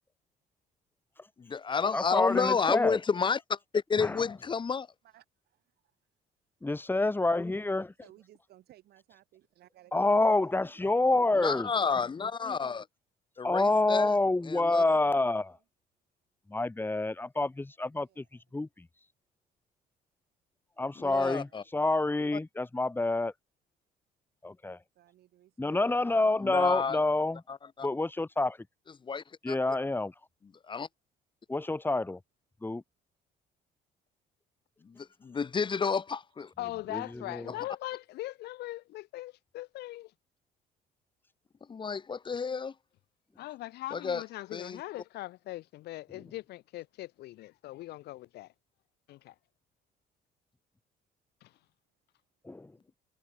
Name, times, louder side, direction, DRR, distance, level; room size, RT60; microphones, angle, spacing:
voice 1, 1.4-4.9 11.4-12.9 13.4-14.1 14.5-14.8 21.0-21.6 26.4-27.0 27.8-27.9 29.0-29.5 30.7-30.9 34.8-36.5 41.7-42.7 43.9-44.2 44.5-44.8, left 5 dB, 30° left, 1.4 m, -31 dB
voice 2, 1.9-3.0 4.0-4.2 6.6-7.9 9.9-11.7 13.4-15.5 16.5-18.9 20.8-23.3 24.4-24.8 25.6-27.4 27.8-28.7 29.4-30.1 31.5-32.2 32.6-32.8 36.9-37.5 46.1-46.2 52.4-52.8, left 2 dB, 10° left, 2.2 m, -28 dB
voice 3, 5.0-6.0 8.0-10.8 14.7-15.6 18.0-18.6 21.2-21.6 22.2-22.3 24.9-26.3 26.6-27.0 36.4-36.5 37.5-37.6, right 14 dB, 70° right, 6.8 m, -60 dB
voice 4, 36.6-40.1 43.4-48.5 49.1-49.3 51.4-51.5, left 17 dB, 75° left, 1.3 m, -40 dB
cardioid pair, 110°, 17 cm